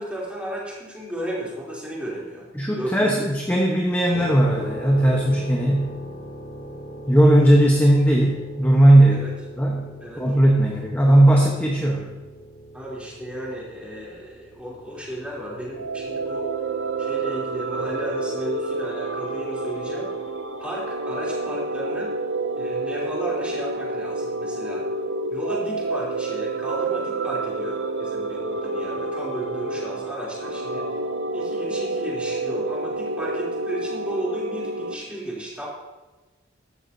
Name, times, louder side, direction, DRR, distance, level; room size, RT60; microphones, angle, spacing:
voice 1, 0.0-2.5 2.8-3.2 9.1-9.3 10.0-10.2 10.7-10.8 12.7-16.5 17.0-20.1 20.6-22.1 22.6-24.8 25.3-30.9 31.3-35.7, right 1 dB, 5° right, -6 dB, 3.3 m, -34 dB
voice 2, 2.5-5.9 7.1-9.3 9.6-9.9 10.2-12.1, right 1 dB, 10° left, -2 dB, 1.0 m, -17 dB
sound 1, 4.1-18.8, right 1 dB, 50° left, 1.2 m, -40 dB
sound 2, 15.6-34.9, right 2 dB, 65° right, 0.7 m, -29 dB
13.5 x 12.0 x 2.8 m, 1.2 s
head